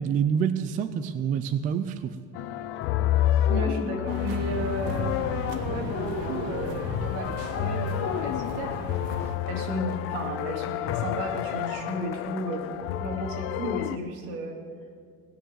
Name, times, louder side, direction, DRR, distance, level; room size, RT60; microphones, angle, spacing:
voice 1, 0.0-2.1, right 7 dB, 25° right, 10 dB, 0.4 m, -27 dB
sound 1, 2.3-14.0, left 11 dB, 40° left, 0.4 m, -29 dB
voice 2, 3.5-5.2 5.7-9.1 9.5-12.7 13.0-14.6, right 1 dB, 75° right, 1 dB, 3.1 m, -33 dB
sound 2, 4.1-9.4, right 5 dB, 90° right, 1.4 m, -37 dB
18.5 x 6.5 x 9.3 m, 2.1 s
cardioid pair, 180°, 32 cm